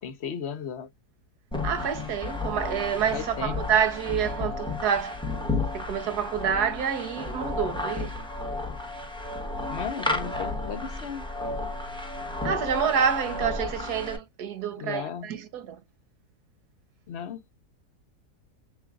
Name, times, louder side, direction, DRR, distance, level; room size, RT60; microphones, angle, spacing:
voice 1, 0.0-0.9 3.1-3.6 9.7-11.3 14.8-15.3 17.1-17.4, left 7 dB, 55° left, 0.8 m, -35 dB
sound 1, 1.5-14.2, left 2 dB, 5° left, 0.7 m, -32 dB
voice 2, 1.6-5.2 5.7-8.1 12.4-15.8, right 8 dB, 75° right, 1.5 m, -28 dB
6.9 x 2.4 x 2.3 m
omnidirectional pair, 1.7 m